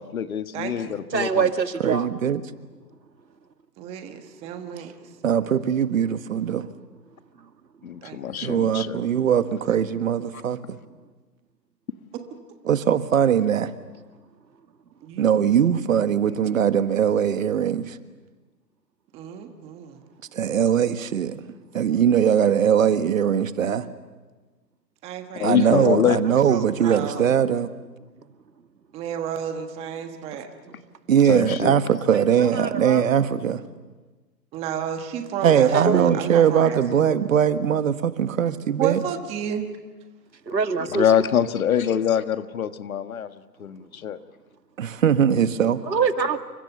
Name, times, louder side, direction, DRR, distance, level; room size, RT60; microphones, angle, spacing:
voice 1, 0.0-1.5 7.8-9.0 25.3-26.2 31.3-31.7 40.9-44.2, left 9 dB, 55° left, 10 dB, 1.6 m, -24 dB
voice 2, 0.5-1.0 3.8-4.9 8.0-8.4 15.0-15.4 19.1-20.0 25.0-25.9 26.7-27.4 28.9-30.8 34.5-36.8 38.8-39.7, right 8 dB, 10° right, 6 dB, 1.3 m, -32 dB
voice 3, 1.1-2.1 26.5-27.0 32.1-33.1 35.7-36.2 40.5-41.0 45.9-46.4, right 5 dB, 85° right, 7 dB, 2.3 m, -25 dB
voice 4, 1.8-2.4 5.2-6.7 8.4-10.8 12.6-13.7 15.2-18.0 20.3-21.4 21.7-23.9 25.4-27.7 31.1-33.6 35.4-39.0 44.8-45.8, right 8 dB, 50° right, 11 dB, 1.6 m, -21 dB
29.0 x 25.5 x 7.0 m, 1.3 s
hypercardioid pair, 150°, 50 cm